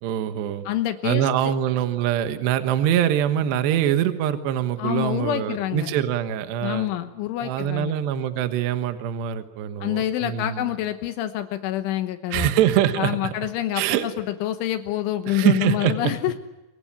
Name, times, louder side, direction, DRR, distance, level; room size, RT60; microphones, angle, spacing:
voice 1, 0.0-0.6 1.0-6.9 7.4-10.7 12.3-13.3 13.7-14.1 15.3-16.1, right 11 dB, 70° right, 8 dB, 3.3 m, -24 dB
voice 2, 0.7-1.5 4.8-5.9 6.6-8.0 9.8-12.5 13.0-16.4, left 13 dB, 80° left, 8 dB, 3.5 m, -27 dB
28.0 x 24.0 x 8.8 m, 1.0 s
omnidirectional pair, 5.6 m